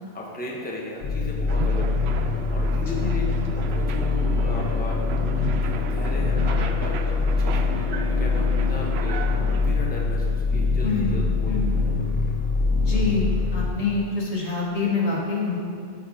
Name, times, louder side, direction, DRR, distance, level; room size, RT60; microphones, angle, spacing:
voice 1, 0.1-3.3 3.5-5.0 5.4-9.2 9.5-11.8 12.2-12.3, left 1 dB, 10° left, -3 dB, 1.0 m, -36 dB
sound 1, 1.0-13.7, left 4 dB, 80° left, 1.3 m, -24 dB
sound 2, 1.5-9.7, right 6 dB, 65° right, 0.8 m, -34 dB
voice 2, 3.0-3.3 10.8-11.8 12.8-15.6, left 3 dB, 65° left, -4 dB, 1.8 m, -26 dB
sound 3, 4.1-6.5 7.5-9.3, left 1 dB, 85° right, 2.7 m, -38 dB
13.5 x 5.0 x 3.8 m, 2.2 s
omnidirectional pair, 1.2 m